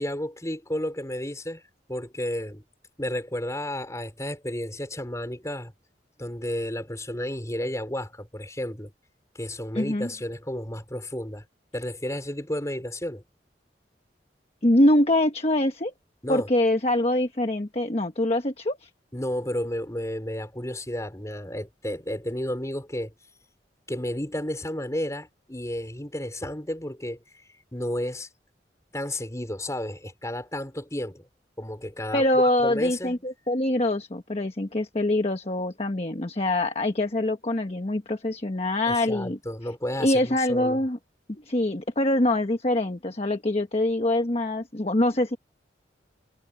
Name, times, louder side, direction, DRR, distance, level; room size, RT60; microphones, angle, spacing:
voice 1, 0.0-1.6 1.9-2.6 3.0-5.7 6.2-8.9 9.3-11.4 11.7-13.2 16.2-16.5 19.1-23.1 23.9-27.2 27.7-28.3 28.9-31.3 31.6-33.2 38.9-40.8, left 1 dB, 20° left, 4.9 m, -32 dB
voice 2, 9.7-10.1 14.6-15.9 16.3-18.9 32.1-39.4 40.0-41.0 41.3-45.4, left 1 dB, 35° left, 1.2 m, -24 dB
head